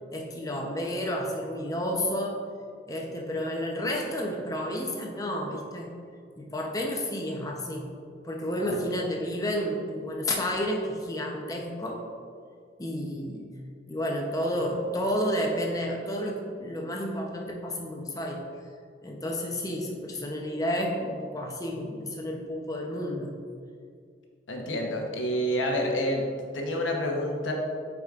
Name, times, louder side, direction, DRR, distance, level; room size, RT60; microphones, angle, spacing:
voice 1, 0.1-2.4 2.9-5.9 6.4-7.9 8.2-12.0 12.8-13.4 13.9-18.4 19.0-23.3, equal, 20° left, 0 dB, 0.7 m, -31 dB
voice 2, 24.5-26.3 26.5-27.5, equal, 85° left, 0 dB, 1.0 m, -28 dB
8.0 x 4.9 x 2.5 m, 2.2 s
head